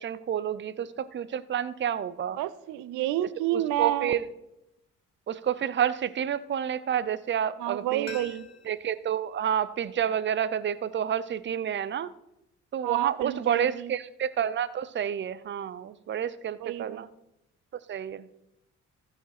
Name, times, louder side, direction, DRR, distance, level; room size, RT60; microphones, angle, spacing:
voice 1, 0.0-2.4 3.5-4.2 5.3-8.2 8.7-12.1 12.7-17.1 17.7-18.3, right 9 dB, 40° right, 16 dB, 0.6 m, -29 dB
voice 2, 2.4-4.2 7.6-8.5 12.8-13.9 16.6-17.1, right 13 dB, 90° right, 17 dB, 0.5 m, -30 dB
sound 1, 8.0-10.8 11.1-11.2, left 8 dB, 60° left, 2.5 m, -50 dB
14.5 x 4.9 x 5.9 m, 0.86 s
cardioid pair, 90°, 30 cm